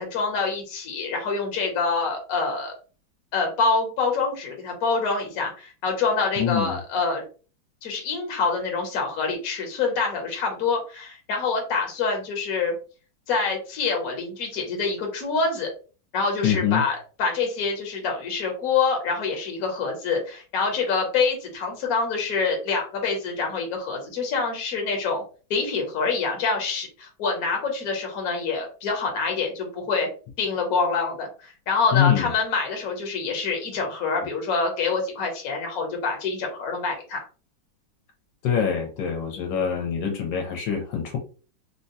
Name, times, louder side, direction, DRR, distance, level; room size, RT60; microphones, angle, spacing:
voice 1, 0.0-2.7 3.3-7.2 7.8-12.7 13.3-15.7 16.1-25.2 25.5-30.1 30.4-37.2, left 4 dB, 55° left, 2 dB, 1.2 m, -26 dB
voice 2, 6.4-6.8 16.4-16.8 31.9-32.3 38.4-41.2, left 8 dB, 75° left, 2 dB, 1.4 m, -24 dB
3.6 x 2.2 x 2.6 m, 0.36 s
omnidirectional pair, 2.2 m